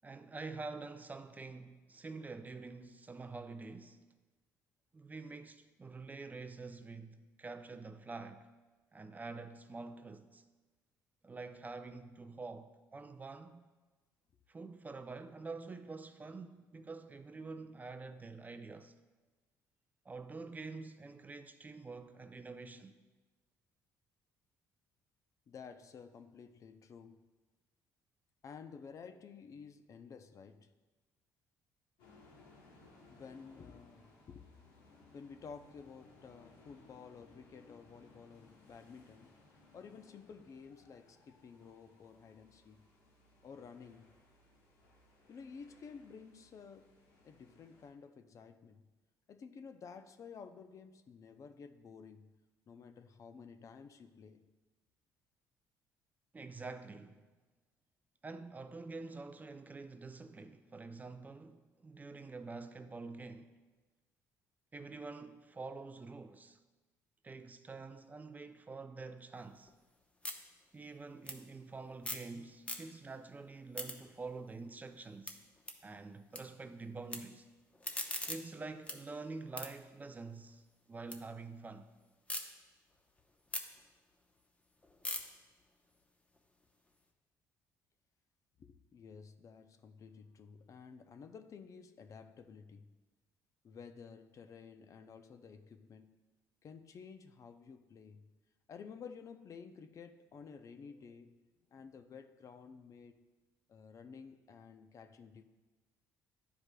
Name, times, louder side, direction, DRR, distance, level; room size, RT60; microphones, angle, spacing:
voice 1, 0.0-4.1 4.9-8.5 8.9-10.4 11.2-13.7 14.5-18.9 20.1-23.0 56.3-57.3 58.2-63.6 64.7-66.6 67.2-69.7 70.7-75.4 75.8-77.5 78.3-81.9, right 3 dB, 25° right, 0.4 m, -47 dB
voice 2, 25.5-27.3 28.4-30.7 33.1-34.5 35.1-39.4 39.7-42.9 43.4-44.2 45.3-46.9 47.2-48.8 49.3-52.3 52.7-54.4 88.6-92.9 93.6-96.1 96.6-98.3 98.7-101.4 101.7-103.2 103.7-105.4, left 6 dB, 45° left, 0.5 m, -53 dB
sound 1, 32.0-47.9, left 3 dB, 85° left, 1.3 m, -63 dB
sound 2, 69.4-72.3 72.6-73.2 73.5-76.4 76.7-77.2 77.6-81.2 81.6-82.4 82.9-87.0, left 1 dB, 15° left, 0.8 m, -45 dB
11.0 x 4.8 x 2.2 m
supercardioid pair, 80°, 7 cm